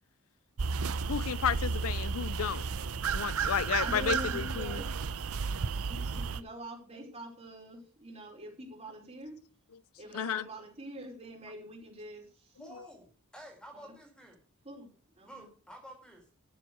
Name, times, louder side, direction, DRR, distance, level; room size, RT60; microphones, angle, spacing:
sound 1, 0.6-6.4, right 5 dB, 85° right, 0.7 m, -33 dB
voice 1, 1.1-2.6 3.1-4.8 10.1-10.4, left 8 dB, 75° left, 0.5 m, -32 dB
voice 2, 3.8-4.9 5.9-9.4 10.0-12.5 13.7-13.9 14.6-14.9 15.2-15.5, equal, 30° right, 5.0 m, -44 dB
voice 3, 12.6-14.4 15.2-16.3, right 1 dB, 5° left, 4.1 m, -50 dB
13.0 x 7.6 x 6.3 m
head